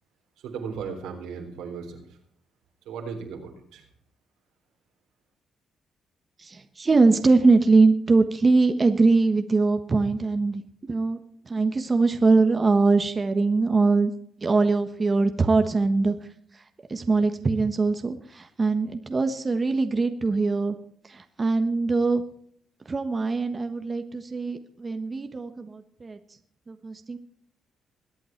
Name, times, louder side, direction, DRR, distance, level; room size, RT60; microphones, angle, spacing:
voice 1, 0.4-2.2 2.9-3.9, right 6 dB, 90° right, 2 dB, 3.7 m, -36 dB
voice 2, 6.4-14.1 14.4-16.6 16.9-20.8 21.0-22.2 22.9-26.2 26.7-27.2, right 3 dB, 30° right, 7 dB, 1.3 m, -22 dB
22.0 x 8.6 x 4.5 m, 0.64 s
cardioid pair, 90°, 0 cm